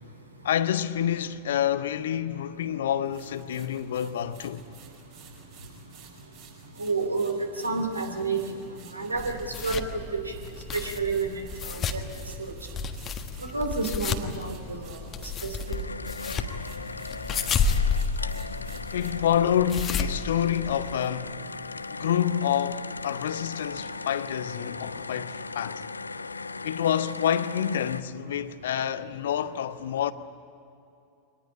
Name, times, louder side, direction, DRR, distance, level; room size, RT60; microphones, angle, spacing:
voice 1, 0.4-4.6 18.9-21.5 22.0-25.8 26.6-30.1, left 9 dB, 60° left, 0.9 m, -28 dB
sound 1, 3.0-15.9 16.2-19.1, right 6 dB, 45° right, 5.6 m, -52 dB
voice 2, 6.8-7.3 7.6-8.4 8.9-9.3 9.6-10.2 10.7-12.0 13.4-15.0, right 4 dB, 80° right, 2.8 m, -29 dB
sound 2, 9.1-21.1, left 5 dB, 25° left, 1.5 m, -32 dB
sound 3, 15.7-28.0, left 3 dB, 80° left, 0.5 m, -38 dB
24.0 x 19.5 x 9.9 m
figure-of-eight pair, 90°, 0 cm